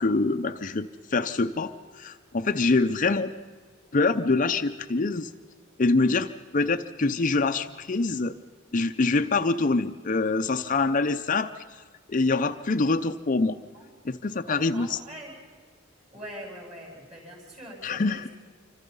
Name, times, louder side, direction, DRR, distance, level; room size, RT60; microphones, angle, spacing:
voice 1, 0.0-3.3 3.9-5.3 5.8-8.3 8.7-11.6 12.1-13.6 14.0-15.0 17.8-18.3, left 3 dB, 40° left, 8 dB, 0.6 m, -25 dB
voice 2, 14.5-15.3 16.1-18.2, equal, 30° right, 0 dB, 7.8 m, -42 dB
27.0 x 25.0 x 5.5 m, 1.5 s
head